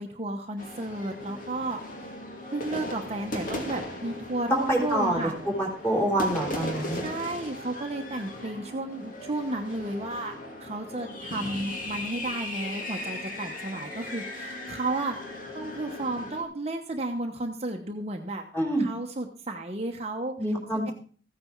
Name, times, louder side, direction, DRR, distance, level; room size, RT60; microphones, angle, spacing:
voice 1, 0.0-2.1 2.5-5.3 6.9-10.3 10.6-15.2 15.5-18.4 18.8-20.3 20.9-21.0, right 2 dB, 35° right, 3 dB, 1.1 m, -33 dB
sound 1, 0.6-16.4, left 1 dB, 45° left, 2.4 m, -37 dB
voice 2, 4.5-5.2 5.5-7.0 18.5-18.9 20.4-20.9, right 1 dB, 10° left, -1 dB, 4.1 m, -26 dB
15.0 x 9.6 x 4.6 m, 0.43 s
head